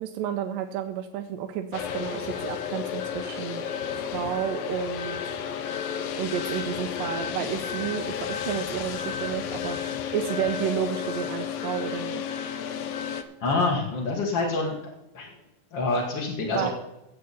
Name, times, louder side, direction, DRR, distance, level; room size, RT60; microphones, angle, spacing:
voice 1, 0.0-3.6 4.1-5.3 6.1-9.8 10.1-12.2 16.5-16.7, right 9 dB, 90° right, 5 dB, 2.4 m, -31 dB
sound 1, 1.7-13.2, left 8 dB, 80° left, 1.4 m, -32 dB
voice 2, 13.4-14.8 15.1-15.3 15.7-16.7, left 3 dB, 45° left, -4 dB, 1.7 m, -26 dB
17.0 x 7.7 x 4.1 m, 0.90 s
omnidirectional pair, 3.9 m